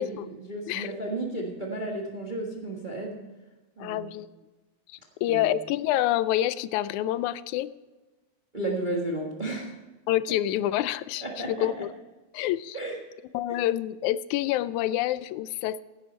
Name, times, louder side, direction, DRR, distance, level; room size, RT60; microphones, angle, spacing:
voice 1, 0.0-3.2 3.8-4.1 5.3-5.5 8.5-9.7 11.2-11.7 12.7-13.0 13.5-13.6, right 2 dB, 30° right, 0 dB, 0.9 m, -33 dB
voice 2, 3.8-4.3 4.9-7.7 10.1-11.9 12.3-12.8 13.3-15.8, left 13 dB, 85° left, 16 dB, 2.0 m, -27 dB
16.0 x 10.0 x 4.4 m, 1.2 s
omnidirectional pair, 3.3 m